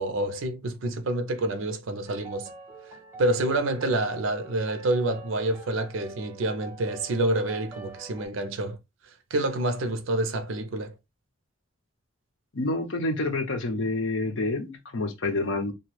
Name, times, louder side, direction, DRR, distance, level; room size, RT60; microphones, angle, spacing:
voice 1, 0.0-2.5 3.2-8.8 9.3-10.9, right 1 dB, 75° right, 0.5 m, -27 dB
sound 1, 2.1-8.3, right 3 dB, 15° right, 1.0 m, -45 dB
voice 2, 12.5-15.7, left 2 dB, 65° left, 0.7 m, -28 dB
2.9 x 2.2 x 3.1 m
head